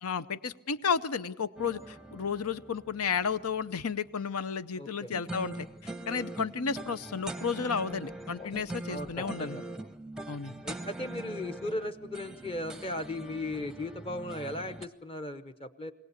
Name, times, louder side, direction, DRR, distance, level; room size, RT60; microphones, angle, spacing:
voice 1, 0.0-9.6 10.3-10.5, left 6 dB, 80° left, 13 dB, 0.8 m, -32 dB
sound 1, 1.6-3.9 5.1-14.9, right 2 dB, 5° right, 0.7 m, -42 dB
voice 2, 4.8-5.1 8.9-9.6 10.6-15.9, left 1 dB, 25° left, 10 dB, 0.8 m, -37 dB
sound 2, 7.9-9.8, left 3 dB, 40° left, 2.4 m, -49 dB
23.0 x 17.5 x 8.2 m, 0.99 s
head